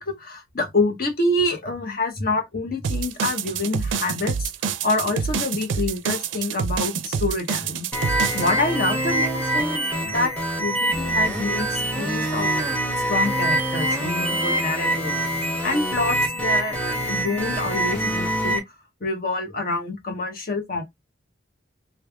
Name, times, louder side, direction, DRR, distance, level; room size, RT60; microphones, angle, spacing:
voice 1, 0.0-4.5 4.8-10.3 10.6-12.5 13.0-15.1 15.6-16.8 17.1-18.7 19.0-20.8, left 2 dB, 50° left, 1.0 m, -27 dB
sound 1, 2.8-8.5, right 6 dB, 85° right, 0.4 m, -27 dB
sound 2, 7.9-18.6, right 1 dB, 10° left, 1.1 m, -24 dB
3.3 x 2.4 x 3.3 m
head